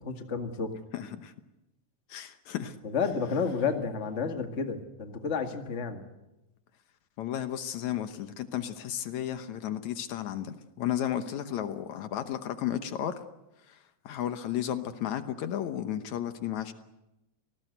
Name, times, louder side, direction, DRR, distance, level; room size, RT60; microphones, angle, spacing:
voice 1, 0.0-0.8 2.8-6.0, left 5 dB, 25° left, 5 dB, 1.7 m, -31 dB
voice 2, 0.9-1.3 2.1-2.8 7.2-13.2 13.7-13.8 14.1-16.7, left 10 dB, 70° left, 9 dB, 2.3 m, -33 dB
27.0 x 18.5 x 8.0 m, 0.94 s
omnidirectional pair, 3.5 m